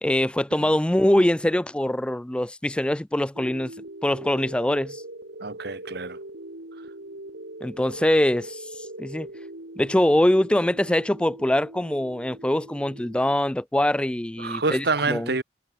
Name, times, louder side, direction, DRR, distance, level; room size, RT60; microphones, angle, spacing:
voice 1, 0.0-3.7 4.0-5.0 7.6-9.3 9.8-15.3, left 1 dB, 5° left, 0.4 m, -23 dB
sound 1, 3.3-13.3, right 1 dB, 80° right, 3.9 m, -41 dB
voice 2, 5.4-6.2 14.4-15.4, right 3 dB, 60° right, 1.3 m, -27 dB
head